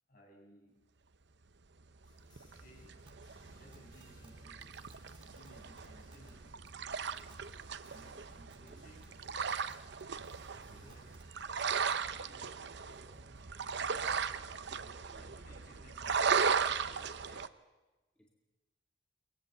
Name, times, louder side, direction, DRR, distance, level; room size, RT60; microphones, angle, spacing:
voice 1, 0.1-0.8 2.4-3.0 3.5-4.7 5.2-6.6 7.9-9.0 10.3-11.2 12.1-12.6 13.4-14.2 14.7-17.2, equal, 50° left, 1 dB, 6.3 m, -61 dB
sound 1, 2.0-14.3, equal, 25° left, 6.5 m, -63 dB
sound 2, 2.1-17.5, right 6 dB, 65° right, 0.8 m, -37 dB
sound 3, 3.1-3.2 3.7-4.3 4.6-4.7 4.9-5.5 5.8-6.3 6.7-6.8 7.2-7.4 7.9-8.0 8.5-8.7 9.0-9.1 9.6-10.3 10.9-11.2, right 3 dB, 30° right, 2.7 m, -60 dB
voice 2, 12.9-13.2 14.4-14.6 15.1-15.3 15.7-15.8 16.3-17.5 18.2-18.3, equal, 5° left, 0 dB, 2.3 m, -61 dB
23.5 x 20.0 x 7.7 m, 1.1 s
head